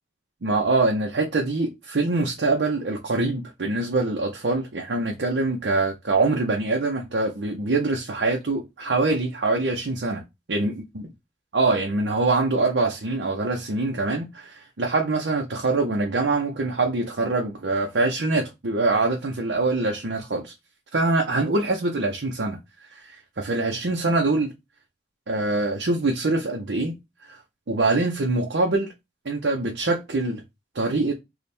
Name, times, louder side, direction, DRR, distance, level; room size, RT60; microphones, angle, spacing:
voice 1, 0.4-10.2 10.5-11.0 11.5-20.5 20.9-22.6 22.9-24.5 25.3-27.0 27.2-27.4 27.7-28.9 29.2-30.4 30.7-31.1, right 3 dB, 90° right, 0.7 m, -24 dB
3.2 x 2.4 x 4.2 m
head